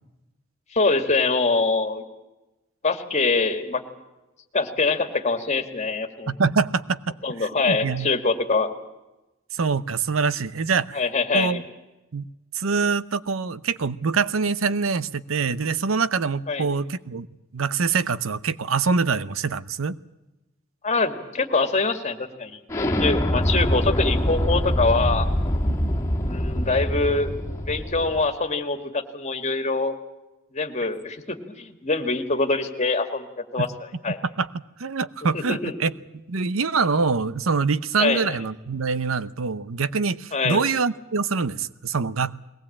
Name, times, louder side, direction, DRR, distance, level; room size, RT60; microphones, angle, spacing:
voice 1, 0.7-2.0 2.8-3.8 4.5-6.3 7.2-8.7 10.9-11.6 16.5-16.7 20.8-22.6 23.0-25.3 26.2-27.3 27.7-29.9 30.5-33.7 34.0-34.2 35.3-35.7 38.0-38.4 40.3-40.6, left 3 dB, 35° left, 7 dB, 2.1 m, -24 dB
voice 2, 6.3-8.1 9.5-11.0 11.3-11.6 12.1-12.2 12.5-17.3 17.5-20.0 25.8-26.0 33.6-33.7 34.2-34.5 34.8-42.3, right 5 dB, 90° right, 16 dB, 0.8 m, -25 dB
Explosion, 22.7-28.2, left 1 dB, 15° left, 2.5 m, -24 dB
21.5 x 18.5 x 8.6 m, 1.0 s
head